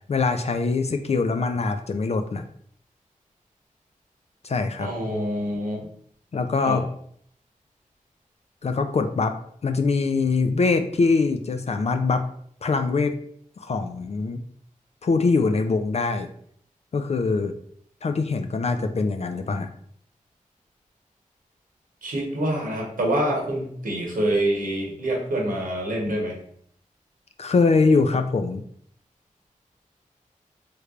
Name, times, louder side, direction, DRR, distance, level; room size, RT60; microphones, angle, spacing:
voice 1, 0.1-2.5 4.4-4.9 6.3-6.8 8.6-9.3 9.6-12.2 12.6-13.1 13.6-14.4 15.0-16.3 16.9-17.6 18.0-19.7 27.4-28.6, left 4 dB, 50° left, 6 dB, 0.4 m, -23 dB
voice 2, 4.8-5.8 6.6-6.8 22.0-26.4, right 1 dB, 75° right, -2 dB, 1.1 m, -26 dB
3.2 x 3.2 x 2.4 m, 0.63 s
cardioid pair, 50°, 14 cm